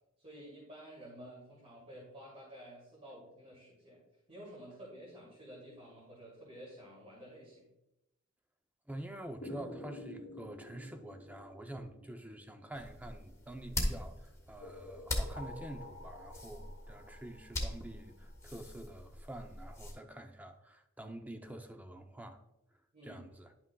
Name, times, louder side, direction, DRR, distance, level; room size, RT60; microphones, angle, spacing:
voice 1, 0.2-4.0 4.3-7.7 22.9-23.2, equal, 30° right, 2.4 m, -51 dB
voice 2, 8.9-22.4 23.0-23.5, right 1 dB, 10° right, 0.5 m, -47 dB
sound 1, 9.4-13.7 14.6-18.4, left 1 dB, 65° left, 1.1 m, -50 dB
sound 2, 12.7-19.9, left 1 dB, 15° left, 1.3 m, -41 dB
11.0 x 5.9 x 2.3 m
head